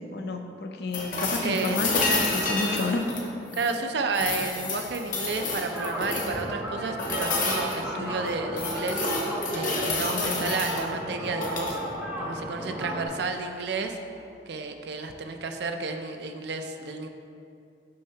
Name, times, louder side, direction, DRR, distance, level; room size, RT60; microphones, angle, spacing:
voice 1, 0.1-3.1 8.0-8.2 9.9-10.9, left 3 dB, 60° left, 4 dB, 0.5 m, -31 dB
sound 1, 0.9-3.8 4.1-6.4 7.0-7.8 8.2-10.8 11.3-11.8 13.8-13.9, left 3 dB, 45° left, 0.8 m, -29 dB
voice 2, 1.4-1.8 3.5-9.0 9.5-11.8 12.2-14.0 14.5-17.1, right 4 dB, 65° right, 6 dB, 0.4 m, -31 dB
sound 2, 5.7-13.1, right 1 dB, 10° right, 0.7 m, -34 dB
6.5 x 5.4 x 2.8 m, 2.5 s
head